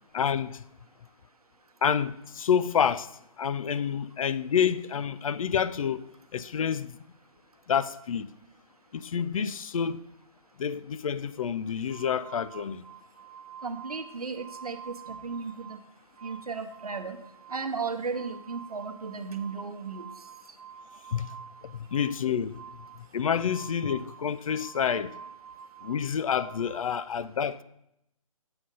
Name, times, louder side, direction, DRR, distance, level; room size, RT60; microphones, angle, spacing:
voice 1, 0.1-0.6 1.8-3.1 3.4-6.0 6.3-7.0 7.7-8.3 8.9-10.0 10.6-12.8 21.1-21.3 21.6-22.6 23.1-25.1 25.8-27.6, left 7 dB, 65° left, 0.4 m, -28 dB
sound 1, 11.9-15.8 16.1-27.1, right 7 dB, 30° right, 0.6 m, -48 dB
voice 2, 13.6-15.8 16.2-17.2 17.5-20.0, right 5 dB, 85° right, 0.8 m, -35 dB
7.8 x 3.7 x 5.4 m
hypercardioid pair, 150°, 19 cm